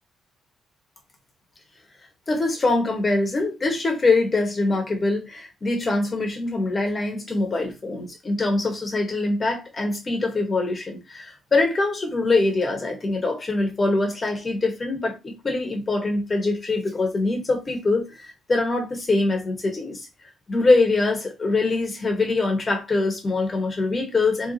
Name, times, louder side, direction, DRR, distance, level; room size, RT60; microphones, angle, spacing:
voice 1, 2.3-20.1 20.5-24.5, left 2 dB, 30° left, 1.6 m, -23 dB
4.6 x 3.6 x 3.1 m
cardioid pair, 90°, 0 cm